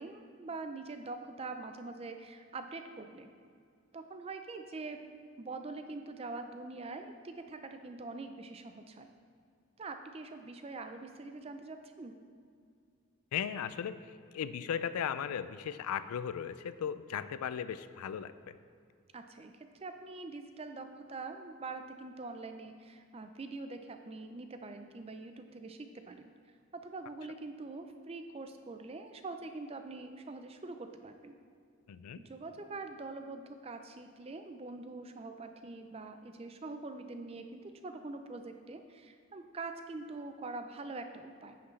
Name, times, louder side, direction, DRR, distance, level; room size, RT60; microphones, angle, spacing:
voice 1, 0.0-3.3 3.9-5.0 5.4-9.1 9.8-12.1 19.1-26.3 26.7-31.4 32.2-41.6, right 3 dB, 25° right, 7 dB, 0.4 m, -44 dB
voice 2, 13.3-18.5 31.9-32.2, left 8 dB, 90° left, 13 dB, 0.3 m, -37 dB
9.7 x 5.8 x 3.2 m, 2.3 s
head